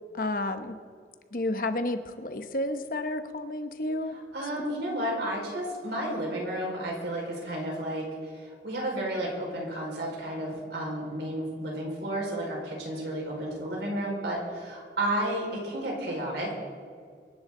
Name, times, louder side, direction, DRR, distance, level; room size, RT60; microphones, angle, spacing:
voice 1, 0.1-0.8 1.3-4.2, left 1 dB, 50° left, 8 dB, 0.9 m, -31 dB
voice 2, 4.1-16.6, right 1 dB, 75° right, -2 dB, 4.9 m, -32 dB
24.5 x 11.0 x 3.8 m, 2.1 s
head